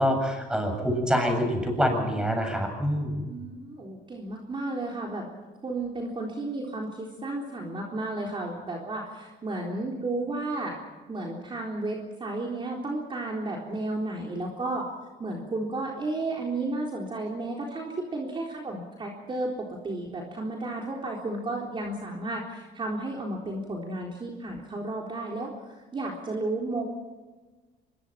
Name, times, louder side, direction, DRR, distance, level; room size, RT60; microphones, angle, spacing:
voice 1, 0.0-3.2, equal, 5° right, 3 dB, 7.7 m, -26 dB
voice 2, 3.2-5.3 5.6-10.8 11.1-14.9 15.2-26.8, right 2 dB, 30° right, -1 dB, 3.9 m, -33 dB
25.0 x 23.0 x 5.8 m, 1.3 s
cardioid pair, 110°, 17 cm